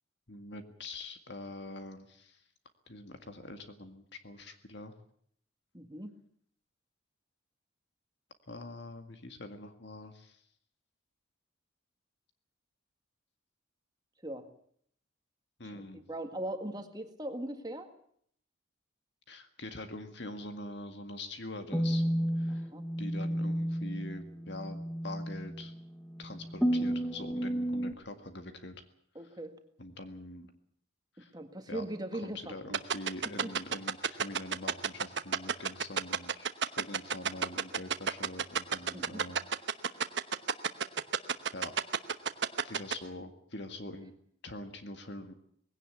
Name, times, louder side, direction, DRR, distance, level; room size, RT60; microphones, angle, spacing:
voice 1, 0.3-2.4 2.9-4.9 8.5-10.4 15.6-16.0 19.3-22.0 22.4-22.7 23.0-25.7 26.2-28.8 29.8-30.5 31.2-31.3 31.7-31.8 32.1-36.5 36.8-39.4 39.9-40.1 41.5-41.7 42.6-44.1 44.4-45.3, left 2 dB, 55° left, 7 dB, 1.9 m, -44 dB
voice 2, 5.7-6.1 14.2-14.5 15.6-17.9 22.5-22.9 29.2-29.6 31.3-32.8 33.4-33.5 38.9-39.2, right 1 dB, 20° right, 6 dB, 1.8 m, -40 dB
sound 1, 21.7-27.9, equal, 5° left, 1.1 m, -32 dB
sound 2, 32.7-42.9, right 6 dB, 55° right, 1.1 m, -29 dB
20.5 x 17.0 x 8.4 m, 0.64 s
head